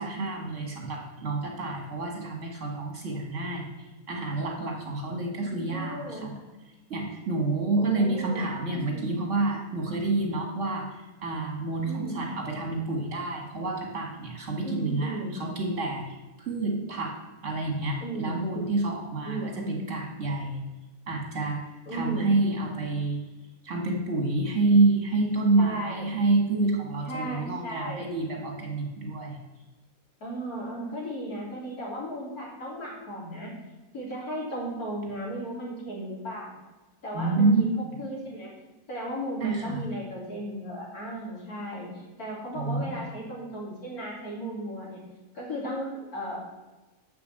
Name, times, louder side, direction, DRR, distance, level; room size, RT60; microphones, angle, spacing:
voice 1, 0.0-3.7 4.1-6.3 6.9-17.1 17.4-19.4 19.7-20.6 21.1-21.6 21.9-23.2 23.6-29.4 37.1-37.7 39.4-39.9 42.5-43.0, right 3 dB, 55° right, 1 dB, 2.4 m, -28 dB
voice 2, 5.3-6.4 7.8-9.4 11.9-12.3 14.6-15.4 18.0-18.8 19.2-19.7 21.9-22.6 25.6-26.2 27.1-28.1 30.2-33.5 33.9-36.6 37.0-38.5 38.9-45.0 45.3-46.4, right 1 dB, 75° left, -4 dB, 4.0 m, -36 dB
8.6 x 7.1 x 7.9 m, 1.2 s
omnidirectional pair, 1.6 m